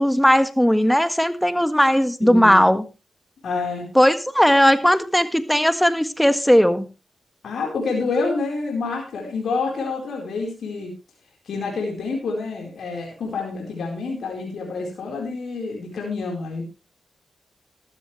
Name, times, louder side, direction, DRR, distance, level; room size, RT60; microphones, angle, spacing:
voice 1, 0.0-2.8 3.9-6.8, equal, 5° left, 11 dB, 1.6 m, -17 dB
voice 2, 2.2-2.6 3.4-3.8 7.4-10.9 11.5-16.6, left 4 dB, 75° left, 0 dB, 4.3 m, -27 dB
14.5 x 12.5 x 3.3 m, 0.29 s
supercardioid pair, 45°, 0 cm